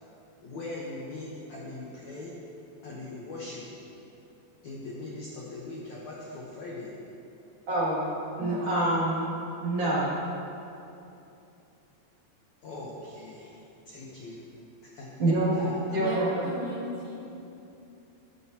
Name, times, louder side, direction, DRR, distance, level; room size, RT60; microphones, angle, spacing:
voice 1, 0.4-2.3 2.8-3.7 4.6-6.9 12.6-13.6 13.9-14.5 14.8-15.1 15.5-16.2, left 2 dB, 65° left, -5 dB, 1.8 m, -40 dB
voice 2, 7.7-8.1 8.4-9.3 9.6-10.1 15.2-15.6 15.9-16.5, right 1 dB, 40° right, -8 dB, 3.1 m, -26 dB
voice 3, 15.9-17.2, equal, 60° right, -5 dB, 2.6 m, -36 dB
14.5 x 13.0 x 3.0 m, 2.8 s
omnidirectional pair, 5.0 m